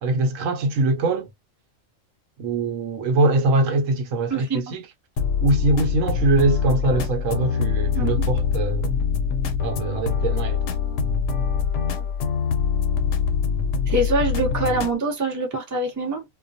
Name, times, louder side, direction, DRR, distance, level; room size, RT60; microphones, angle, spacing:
voice 1, 0.0-1.3 2.4-4.8 5.4-8.9 9.6-10.6, right 2 dB, 75° right, 0.9 m, -22 dB
voice 2, 4.3-4.7 7.9-8.3 13.9-16.2, right 2 dB, 20° right, 0.5 m, -24 dB
sound 1, 5.2-14.9, left 6 dB, 70° left, 0.8 m, -24 dB
2.2 x 2.2 x 2.6 m
omnidirectional pair, 1.4 m